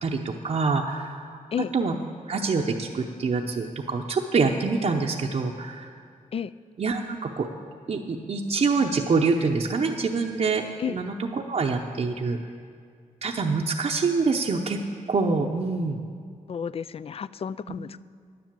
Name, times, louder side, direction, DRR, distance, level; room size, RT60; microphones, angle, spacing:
voice 1, 0.0-1.4 1.7-1.9 2.3-5.9 6.8-7.5 7.9-12.4 13.2-14.8 15.1-16.0, right 4 dB, 50° right, 0 dB, 0.8 m, -25 dB
voice 2, 16.5-18.0, left 7 dB, 45° left, 17 dB, 0.4 m, -31 dB
10.5 x 9.2 x 7.5 m, 2.2 s
cardioid pair, 65°, 14 cm